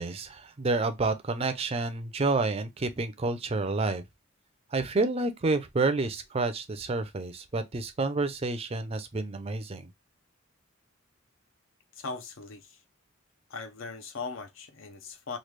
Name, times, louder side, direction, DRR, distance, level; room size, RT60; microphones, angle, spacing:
voice 1, 0.0-4.0 4.7-9.9, right 3 dB, 30° right, 0.4 m, -29 dB
voice 2, 12.0-12.8 13.5-15.4, left 4 dB, 60° left, 0.6 m, -39 dB
3.1 x 2.3 x 3.2 m
head